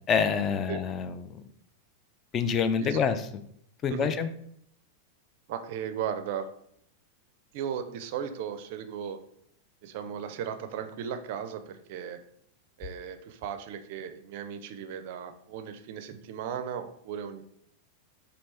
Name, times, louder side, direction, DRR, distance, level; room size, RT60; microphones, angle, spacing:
voice 1, 0.1-1.4 2.3-3.3 3.8-4.3, left 6 dB, 30° left, 10 dB, 0.4 m, -27 dB
voice 2, 5.5-6.5 7.5-9.2 9.8-12.2 12.8-17.4, right 8 dB, 50° right, 9 dB, 0.4 m, -36 dB
4.1 x 2.7 x 3.3 m, 0.70 s
figure-of-eight pair, 90°, 0 cm